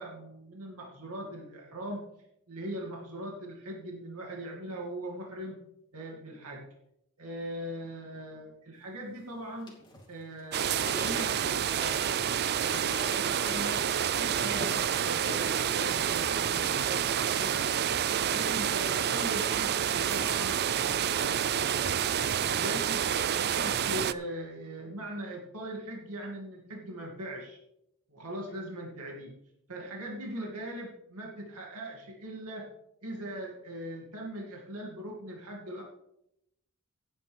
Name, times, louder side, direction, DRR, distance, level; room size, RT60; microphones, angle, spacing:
voice 1, 0.0-2.0 2.5-5.6 5.9-6.6 7.2-9.7 10.1-12.0 12.6-13.9 14.2-17.9 18.3-21.8 22.1-23.0 23.3-27.6 28.1-29.3 29.7-32.7 33.0-35.8, right 1 dB, 85° right, -1 dB, 2.4 m, -40 dB
sound 1, 9.7-12.3 12.5-14.2 14.5-14.8 15.3-16.2 16.5-17.2, left 2 dB, 20° left, 2.6 m, -44 dB
sound 2, 10.5-24.1, right 9 dB, 45° right, 0.4 m, -28 dB
16.5 x 9.1 x 3.5 m, 0.82 s
head